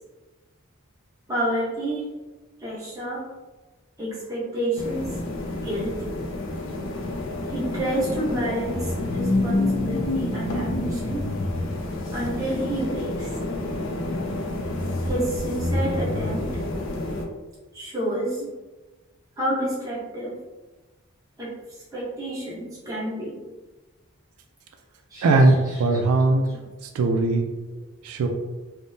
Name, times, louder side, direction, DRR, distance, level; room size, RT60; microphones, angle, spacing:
voice 1, 1.3-2.1 2.6-3.3 4.0-5.1 5.6-6.0 7.5-11.3 12.1-13.3 15.0-16.5 17.7-18.4 19.4-20.4 21.4-21.5 21.9-23.4 25.1-26.0, right 1 dB, 15° right, -8 dB, 0.8 m, -29 dB
sound 1, 4.8-17.2, left 1 dB, 60° left, 0.4 m, -28 dB
voice 2, 25.2-26.4 26.9-27.5 28.0-28.3, right 2 dB, 85° right, 4 dB, 0.3 m, -19 dB
3.5 x 2.0 x 2.6 m, 1.2 s
head